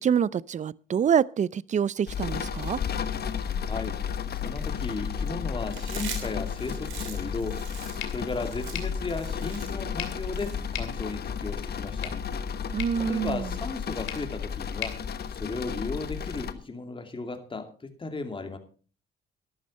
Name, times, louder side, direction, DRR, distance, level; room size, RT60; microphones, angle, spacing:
voice 1, 0.0-2.8 12.7-13.5, right 8 dB, 35° right, 0.5 m, -26 dB
sound 1, 2.1-16.5, left 7 dB, 55° left, 1.3 m, -33 dB
voice 2, 3.6-4.0 4.3-7.6 8.1-12.2 13.0-15.0 15.3-18.6, left 3 dB, 25° left, 2.6 m, -35 dB
Chewing mastication, 5.7-11.2, right 7 dB, 85° right, 3.7 m, -42 dB
sound 2, 8.0-16.0, left 9 dB, 80° left, 2.7 m, -43 dB
14.0 x 11.5 x 4.3 m
cardioid pair, 90°, 20 cm